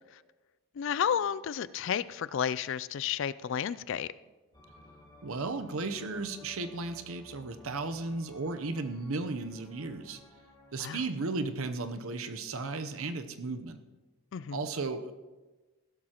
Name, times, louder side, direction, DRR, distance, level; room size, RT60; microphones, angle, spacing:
voice 1, 0.8-4.1 10.8-11.0 14.3-14.7, left 8 dB, 60° left, 17 dB, 0.3 m, -32 dB
sound 1, 4.5-11.2, left 1 dB, 20° left, 1.7 m, -55 dB
voice 2, 5.2-10.2 10.7-13.8 14.5-15.1, right 3 dB, 70° right, 9 dB, 0.8 m, -35 dB
16.0 x 12.5 x 3.0 m, 1.2 s
head